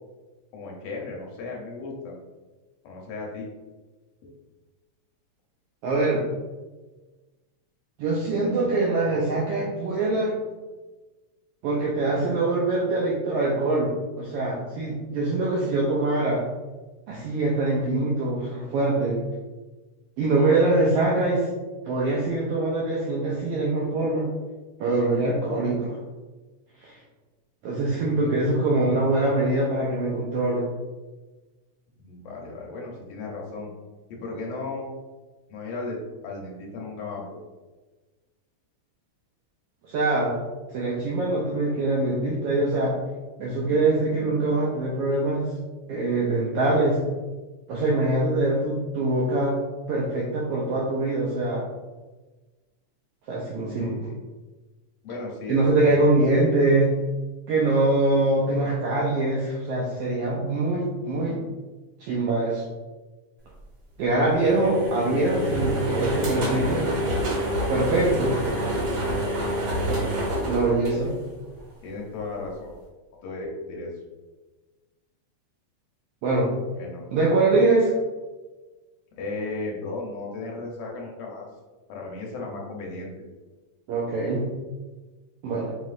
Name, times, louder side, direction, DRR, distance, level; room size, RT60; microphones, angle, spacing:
voice 1, 0.5-2.1 2.8-3.5 32.0-33.7 34.1-34.9 35.5-36.0 36.2-37.3 53.8-54.2 55.0-55.6 55.8-56.0 64.3-64.7 71.8-72.7 73.2-73.9 76.8-77.1 79.2-81.5 81.9-83.2, left 3 dB, 70° left, -1 dB, 1.8 m, -35 dB
voice 2, 5.8-6.3 8.0-10.4 11.6-16.4 17.1-19.2 20.2-21.5 21.9-24.3 24.8-26.0 26.8-27.0 27.6-30.6 39.9-40.4 40.7-43.0 43.4-45.5 45.9-47.0 47.7-49.6 49.9-51.7 53.3-53.9 55.5-56.9 57.5-61.4 62.0-62.6 64.0-67.0 67.7-68.4 70.5-71.1 76.2-76.5 77.1-77.9 83.9-84.5 85.4-85.7, right 2 dB, 85° right, -4 dB, 1.3 m, -23 dB
sound 1, 64.3-71.6, right 1 dB, 50° right, 1.3 m, -27 dB
5.3 x 3.0 x 2.4 m, 1.2 s
omnidirectional pair, 3.3 m